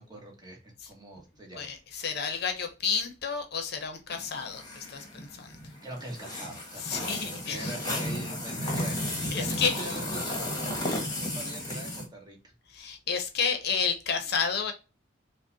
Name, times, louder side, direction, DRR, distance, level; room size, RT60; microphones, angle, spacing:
voice 1, 0.0-1.7 5.8-12.4, right 1 dB, 20° right, 1.2 m, -42 dB
voice 2, 1.6-5.5 6.8-7.7 9.3-9.8 12.7-14.7, left 6 dB, 55° left, 0.7 m, -31 dB
sound 1, 4.1-12.1, left 1 dB, 20° left, 1.1 m, -34 dB
4.9 x 2.1 x 2.7 m
head